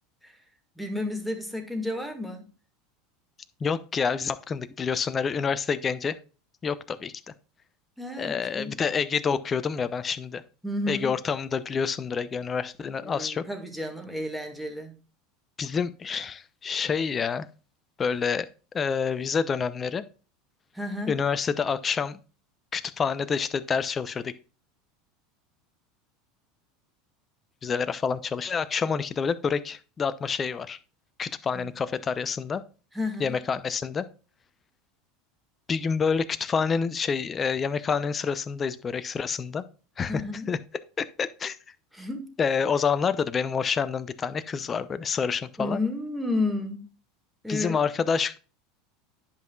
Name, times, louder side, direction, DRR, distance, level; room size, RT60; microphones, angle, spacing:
voice 1, 0.8-2.5 8.0-8.7 10.6-11.2 13.0-14.9 20.7-21.2 32.9-33.4 40.1-40.5 41.9-42.3 45.6-46.9 47.4-47.8, left 2 dB, ahead, 1.7 m, -32 dB
voice 2, 3.6-6.2 6.6-7.3 8.2-10.4 10.9-13.4 15.6-17.5 18.0-18.5 18.7-20.0 21.1-22.2 22.7-24.3 27.6-30.8 31.2-32.6 33.2-34.0 35.7-39.6 40.0-40.2 40.5-40.6 41.0-41.6 42.4-45.8 47.5-48.4, left 6 dB, 30° left, 0.6 m, -28 dB
10.5 x 5.6 x 2.3 m
hypercardioid pair, 85°, 0 cm